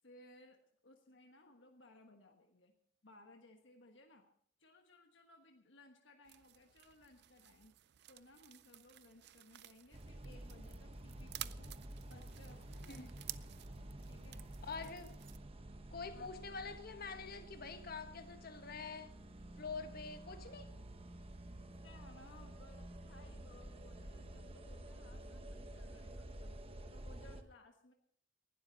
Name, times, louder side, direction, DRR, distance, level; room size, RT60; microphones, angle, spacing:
voice 1, 0.0-0.6 0.8-2.7 3.0-4.3 4.6-7.7 8.1-11.8 12.1-13.1 13.6-13.7 14.0-14.5 14.8-14.9 16.1-16.3 21.8-26.6 26.9-27.9, left 2 dB, 70° left, 1.4 m, -62 dB
sound 1, 6.2-15.4, right 14 dB, 60° right, 0.5 m, -53 dB
sound 2, 9.9-27.4, right 1 dB, 30° right, 1.0 m, -51 dB
voice 2, 14.6-15.1 15.9-19.1 19.6-20.7, left 4 dB, 50° left, 1.3 m, -46 dB
19.5 x 12.0 x 4.0 m
head